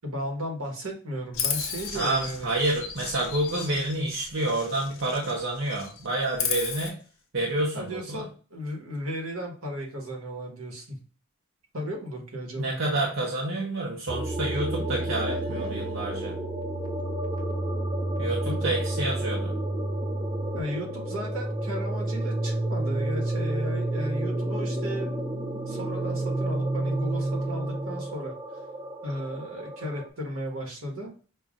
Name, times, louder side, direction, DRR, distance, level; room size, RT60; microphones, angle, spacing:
voice 1, 0.0-2.5 7.7-11.0 11.7-12.8 18.4-18.7 20.5-25.1 25.7-28.3 29.0-31.1, equal, 85° right, 0 dB, 1.3 m, -35 dB
Chirp tweet, 1.3-5.4 5.7-6.9, left 7 dB, 75° left, 0.7 m, -34 dB
voice 2, 1.9-7.0 7.3-8.2 12.6-16.4 18.2-19.5, right 2 dB, 65° right, -2 dB, 0.8 m, -28 dB
sound 1, 14.1-30.1, right 1 dB, 20° right, 0.4 m, -30 dB
5.5 x 2.4 x 2.4 m, 0.38 s
head